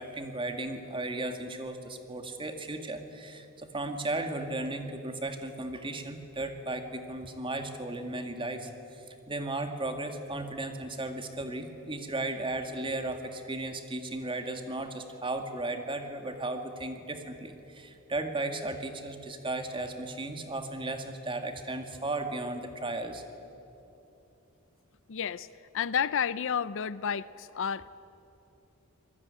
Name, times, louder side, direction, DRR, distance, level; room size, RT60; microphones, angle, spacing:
voice 1, 0.0-8.7 9.3-23.2, right 2 dB, 25° right, 6 dB, 2.0 m, -35 dB
voice 2, 25.1-25.5 25.7-27.9, left 7 dB, 60° left, 17 dB, 0.5 m, -31 dB
26.5 x 19.5 x 9.6 m, 2.9 s
head